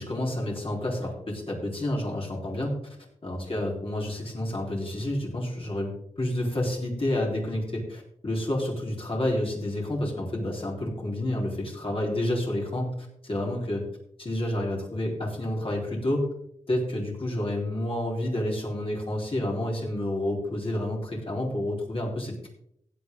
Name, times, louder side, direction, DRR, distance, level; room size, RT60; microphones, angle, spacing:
voice 1, 0.0-2.7 3.2-5.9 6.2-12.9 13.2-13.8 14.2-16.3 16.7-22.5, left 1 dB, 45° left, -2 dB, 4.3 m, -29 dB
16.0 x 10.0 x 3.9 m, 0.71 s
wide cardioid pair, 70°, 13 cm